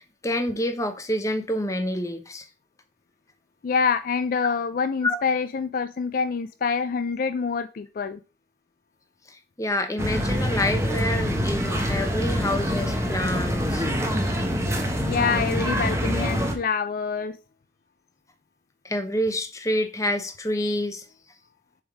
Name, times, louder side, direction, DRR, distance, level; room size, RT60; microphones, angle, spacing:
voice 1, 0.0-2.5 5.0-5.2 9.3-13.9 18.8-21.1, left 1 dB, 20° left, 0.8 m, -27 dB
voice 2, 3.6-8.2 15.1-17.4, left 5 dB, 50° left, 0.4 m, -26 dB
sound 1, 10.0-16.5, equal, 15° right, 1.1 m, -25 dB
7.0 x 3.6 x 4.7 m
head